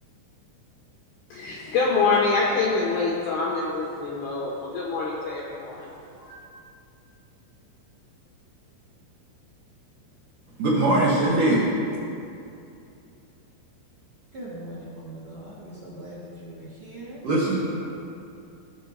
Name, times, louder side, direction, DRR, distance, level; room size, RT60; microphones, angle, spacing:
voice 1, 1.3-5.9 6.2-6.4, left 4 dB, 75° left, -4 dB, 2.3 m, -25 dB
voice 2, 10.6-11.7 17.2-17.9, right 2 dB, 65° right, -8 dB, 2.2 m, -21 dB
voice 3, 14.3-17.2 17.8-17.9, right 1 dB, 45° right, -9 dB, 2.1 m, -40 dB
17.0 x 6.9 x 2.9 m, 2.6 s
omnidirectional pair, 5.4 m